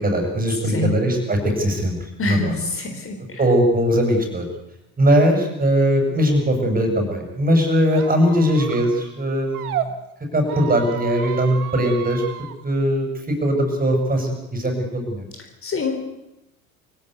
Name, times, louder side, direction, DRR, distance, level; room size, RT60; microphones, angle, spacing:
voice 1, 0.0-2.0 2.2-2.4 3.4-4.5 5.0-9.8 10.3-12.2 12.6-15.3, equal, 20° right, 4 dB, 7.5 m, -20 dB
voice 2, 2.2-3.4 15.6-16.2, left 3 dB, 30° left, 5 dB, 4.0 m, -26 dB
Squeak, 7.9-9.9 10.4-12.5, right 11 dB, 75° right, 1.9 m, -33 dB
24.0 x 16.5 x 8.3 m, 0.90 s
hypercardioid pair, 75°, 45 cm